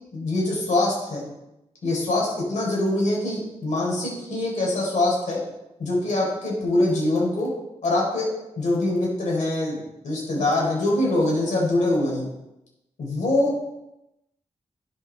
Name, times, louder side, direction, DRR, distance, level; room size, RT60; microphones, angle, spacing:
voice 1, 0.1-1.3 1.8-5.4 5.8-7.5 7.8-8.3 8.6-12.3 13.0-13.5, left 2 dB, 80° left, -3 dB, 4.3 m, -24 dB
16.0 x 5.9 x 4.1 m, 0.91 s
cardioid pair, 80°, 12 cm